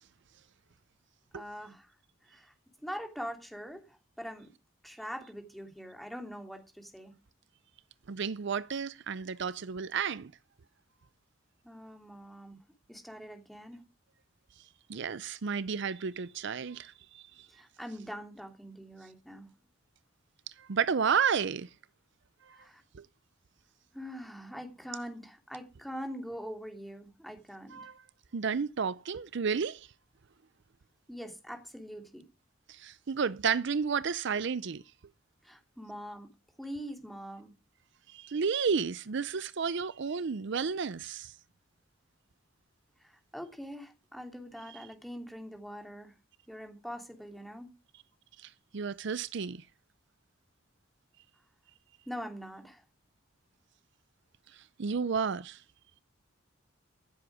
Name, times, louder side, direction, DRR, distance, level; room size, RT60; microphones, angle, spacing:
voice 1, 1.3-1.9 2.3-2.5 2.8-4.5 4.8-7.1 11.6-12.6 12.9-13.8 17.5-19.5 22.5-22.8 23.9-27.8 31.1-32.3 35.4-36.3 36.6-37.5 43.0-46.1 46.5-47.7 52.1-52.8, equal, ahead, 2.9 m, -43 dB
voice 2, 8.1-10.3 14.9-17.5 20.6-21.7 22.5-22.6 22.9-23.1 27.7-28.0 28.3-29.9 32.7-34.8 38.1-41.3 48.4-49.6 54.5-55.6, right 6 dB, 60° right, 0.5 m, -32 dB
15.0 x 7.8 x 4.8 m
head